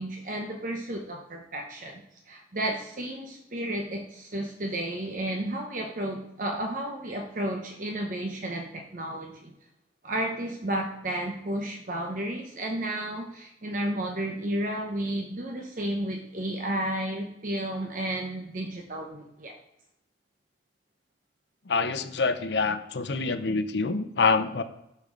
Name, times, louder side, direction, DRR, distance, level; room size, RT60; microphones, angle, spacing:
voice 1, 0.0-9.5 10.0-19.5, right 1 dB, 50° right, 2 dB, 0.9 m, -32 dB
voice 2, 21.7-24.6, left 4 dB, 75° left, 10 dB, 0.7 m, -26 dB
12.0 x 6.8 x 3.8 m, 0.84 s
head